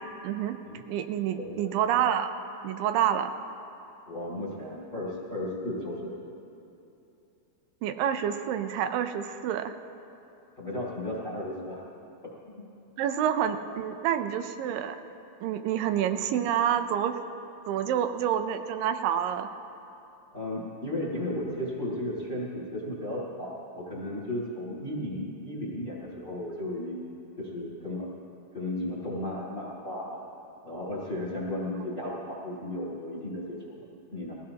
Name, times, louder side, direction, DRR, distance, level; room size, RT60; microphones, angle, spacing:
voice 1, 0.2-0.6 0.9-2.3 2.6-3.3 7.8-9.7 13.0-15.0 15.4-17.2 17.7-19.5, right 9 dB, 80° right, 9 dB, 2.1 m, -28 dB
voice 2, 1.4-1.7 4.1-6.1 10.6-11.8 20.3-27.1 27.4-28.1 28.5-30.2 30.6-33.8 34.1-34.3, left 1 dB, 25° left, -5 dB, 1.8 m, -34 dB
21.0 x 16.0 x 2.9 m, 2.8 s
omnidirectional pair, 4.4 m